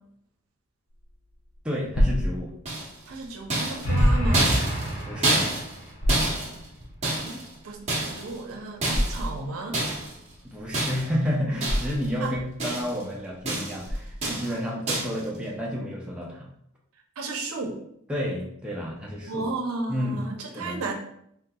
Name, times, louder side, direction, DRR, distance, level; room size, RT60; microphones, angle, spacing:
sound 1, 0.9-14.5, equal, 75° left, 0.7 m, -29 dB
voice 1, 1.6-2.5 5.1-5.5 10.4-16.5 18.1-19.5 19.9-20.3 20.5-20.8, equal, 5° right, -4 dB, 0.4 m, -30 dB
sound 2, 2.7-3.1 3.5-7.5 7.9-8.4 8.8-9.3 9.7-10.2 10.7-11.2 11.6-12.1 12.3-13.0 13.5-13.9 14.2-14.6 14.9-15.2, right 2 dB, 30° right, 0.7 m, -28 dB
voice 2, 3.1-4.5 7.0-7.4 7.6-9.8 12.2-12.4 17.2-17.8 19.3-20.9, right 3 dB, 80° right, 3 dB, 0.5 m, -33 dB
sound 3, 3.8-5.9, equal, 60° left, 1.4 m, -27 dB
3.5 x 2.8 x 2.2 m, 0.72 s
head